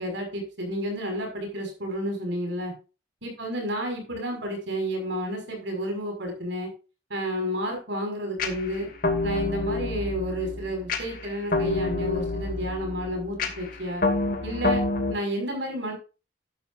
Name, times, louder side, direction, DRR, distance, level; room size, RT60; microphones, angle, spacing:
voice 1, 0.0-2.7 3.2-6.7 7.1-8.9 9.2-14.0 14.4-14.8 15.1-15.9, equal, 65° right, 3 dB, 5.7 m, -31 dB
sound 1, 8.4-15.1, left 2 dB, 45° left, 2.4 m, -28 dB
13.0 x 11.5 x 2.6 m, 0.32 s
head